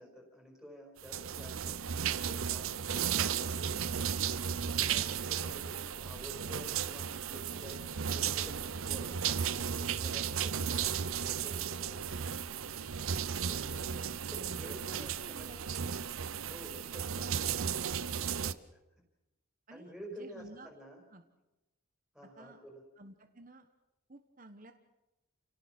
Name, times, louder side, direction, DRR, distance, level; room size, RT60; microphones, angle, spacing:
voice 1, 0.0-1.9 2.2-3.7 4.7-12.4 13.0-13.9 14.3-15.7 16.5-17.6 18.1-18.8 19.7-21.0 22.1-22.8, equal, ahead, 0 dB, 5.3 m, -51 dB
sound 1, 1.0-18.5, right 8 dB, 70° right, 0.7 m, -35 dB
voice 2, 14.6-15.6 19.7-19.9 20.2-20.7 21.1-21.2 22.4-22.6 23.0-23.7 24.1-24.7, right 1 dB, 40° right, 6 dB, 1.2 m, -51 dB
29.5 x 17.5 x 6.1 m, 0.99 s
head